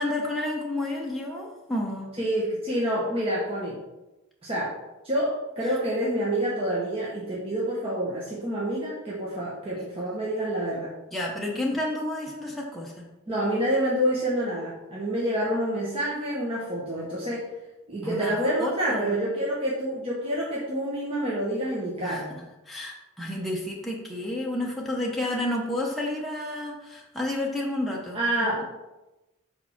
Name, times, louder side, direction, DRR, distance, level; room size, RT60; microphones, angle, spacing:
voice 1, 0.0-2.1 11.1-13.0 18.0-19.2 22.0-22.2 22.7-28.2, left 1 dB, ahead, -3 dB, 0.8 m, -30 dB
voice 2, 2.2-3.8 4.4-4.7 5.0-10.9 13.3-17.5 17.9-22.3 28.1-28.6, right 1 dB, 30° right, -6 dB, 1.3 m, -27 dB
5.0 x 4.4 x 5.8 m, 1.0 s
head